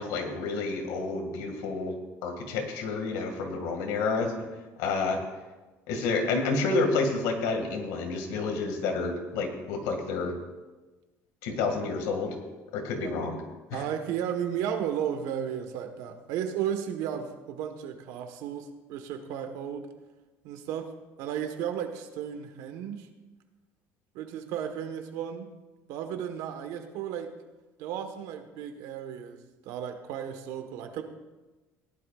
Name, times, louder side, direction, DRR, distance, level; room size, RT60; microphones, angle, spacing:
voice 1, 0.0-1.9 2.2-4.3 4.8-5.2 5.9-10.3 11.4-12.4 12.7-13.4 13.7-13.8, left 3 dB, 85° left, 4 dB, 2.2 m, -29 dB
voice 2, 13.7-19.9 20.4-20.9 21.2-23.1 24.1-25.5 25.9-27.3 27.8-31.0, right 9 dB, 75° right, 6 dB, 1.4 m, -34 dB
17.5 x 12.0 x 2.5 m, 1.2 s
cardioid pair, 125°, 6 cm